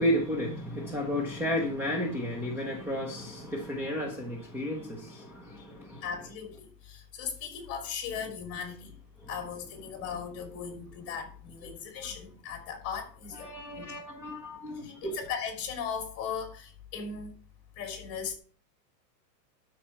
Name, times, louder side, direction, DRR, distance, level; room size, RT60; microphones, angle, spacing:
voice 1, 0.0-6.0 13.3-15.2, equal, 5° right, 0.8 m, -32 dB
voice 2, 5.8-9.0 9.3-14.0 14.7-17.3 17.8-18.4, left 7 dB, 30° left, 2.9 m, -38 dB
12.0 x 4.6 x 5.8 m
supercardioid pair, 155°, 50 cm